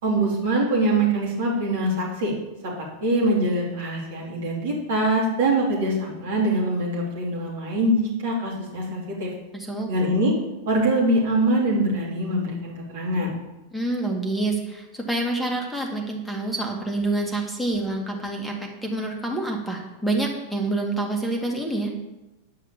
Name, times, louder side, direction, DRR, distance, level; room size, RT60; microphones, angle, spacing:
voice 1, 0.0-2.3 2.6-2.7 3.0-8.0 8.2-9.3 9.9-10.3 10.7-13.3, right 1 dB, 55° right, -3 dB, 3.5 m, -23 dB
voice 2, 9.5-9.9 13.7-21.9, right 2 dB, ahead, 1 dB, 2.1 m, -27 dB
9.8 x 5.7 x 7.4 m, 0.99 s
figure-of-eight pair, 90°, 0 cm